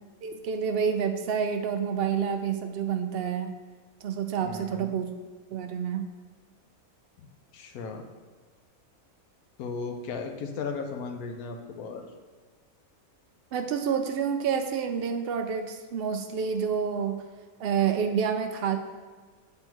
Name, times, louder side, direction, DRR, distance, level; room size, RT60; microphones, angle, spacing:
voice 1, 0.2-3.5 4.0-5.1 5.5-6.1 13.5-17.2 17.6-18.8, right 7 dB, 80° right, 6 dB, 0.5 m, -28 dB
voice 2, 4.4-5.0 7.2-7.3 7.5-8.0 9.6-12.0, left 4 dB, 85° left, 4 dB, 1.2 m, -36 dB
7.6 x 3.5 x 4.5 m, 1.4 s
omnidirectional pair, 1.5 m